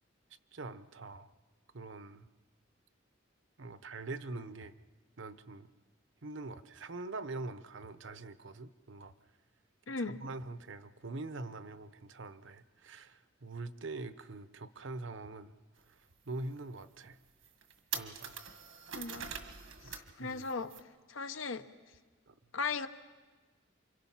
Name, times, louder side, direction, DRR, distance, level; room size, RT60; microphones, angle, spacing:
voice 1, 0.5-1.3 1.7-2.3 3.6-4.7 5.2-5.7 6.2-9.1 10.0-15.5 15.9-17.2 17.9-18.4 20.2-20.4 22.3-22.4, right 2 dB, 70° right, 12 dB, 0.9 m, -44 dB
voice 2, 9.9-10.2 18.9-19.3 20.2-20.7 21.1-21.6 22.5-22.9, left 4 dB, 80° left, 10 dB, 1.1 m, -36 dB
sound 1, 15.8-15.9 16.4-16.5 17.0-17.1 17.4-20.1 20.4-20.8, right 7 dB, 85° right, 1.8 m, -43 dB
28.5 x 25.5 x 5.8 m, 1.3 s
head